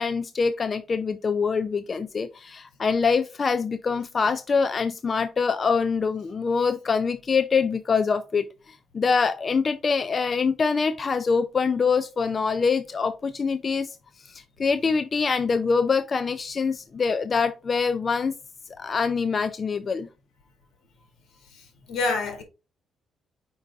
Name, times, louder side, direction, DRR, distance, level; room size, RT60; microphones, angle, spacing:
voice 1, 0.0-8.5 8.9-13.9 14.3-18.3 18.8-20.1, left 5 dB, 40° left, 0.5 m, -24 dB
voice 2, 21.5-22.4, left 3 dB, 75° left, 2.0 m, -28 dB
5.4 x 5.0 x 3.5 m
cardioid pair, 90°, 0 cm